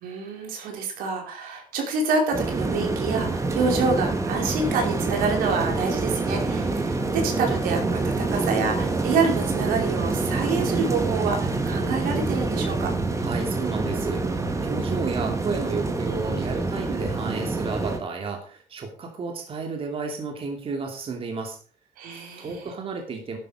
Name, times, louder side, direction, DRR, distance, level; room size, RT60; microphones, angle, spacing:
voice 1, 0.0-7.8 8.2-12.9 22.0-22.7, right 4 dB, 85° right, 2 dB, 4.9 m, -27 dB
sound 1, 2.3-18.0, right 3 dB, 20° right, 2.4 m, -26 dB
voice 2, 13.2-21.6 22.4-23.4, right 4 dB, 40° right, 3 dB, 3.0 m, -32 dB
11.5 x 11.0 x 5.1 m, 0.40 s
cardioid pair, 135°, 15 cm